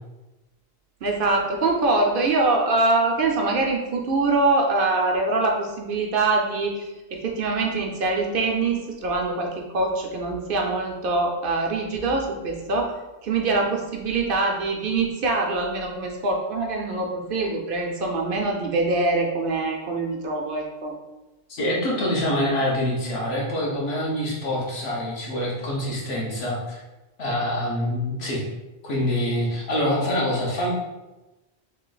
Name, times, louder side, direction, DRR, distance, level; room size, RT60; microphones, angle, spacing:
voice 1, 1.0-12.9 13.2-20.9, right 3 dB, 60° right, 1 dB, 0.7 m, -24 dB
voice 2, 21.5-26.8 27.2-28.4 28.8-30.7, left 1 dB, 75° left, -4 dB, 1.2 m, -25 dB
3.2 x 2.4 x 3.8 m, 1.1 s
omnidirectional pair, 1.1 m